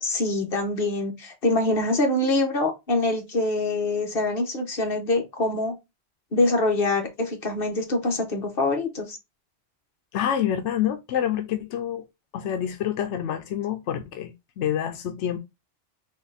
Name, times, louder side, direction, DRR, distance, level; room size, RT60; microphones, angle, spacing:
voice 1, 0.0-5.7 6.3-9.2, left 2 dB, 55° left, 1.4 m, -24 dB
voice 2, 10.1-12.0 12.3-15.4, left 10 dB, 90° left, 0.9 m, -27 dB
4.1 x 2.5 x 4.1 m
omnidirectional pair, 1.2 m